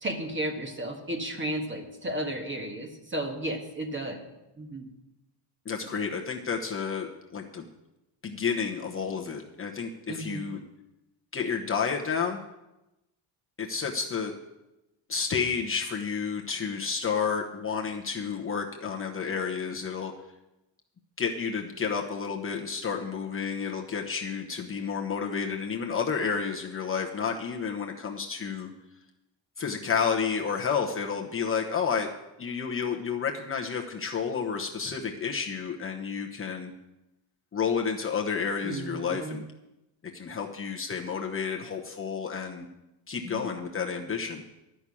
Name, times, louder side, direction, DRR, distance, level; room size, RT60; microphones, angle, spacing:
voice 1, 0.0-4.2 4.6-4.9 10.1-10.5 38.6-39.4 43.2-43.5, right 1 dB, 25° right, 3 dB, 1.6 m, -33 dB
voice 2, 5.6-7.6 8.2-10.6 11.3-12.4 13.6-14.3 15.1-20.1 21.2-28.7 29.6-32.1 32.4-36.7 37.5-39.4 40.1-42.7 43.1-44.4, left 6 dB, 25° left, 0 dB, 1.0 m, -30 dB
11.5 x 6.2 x 8.4 m, 0.96 s
cardioid pair, 140°, 47 cm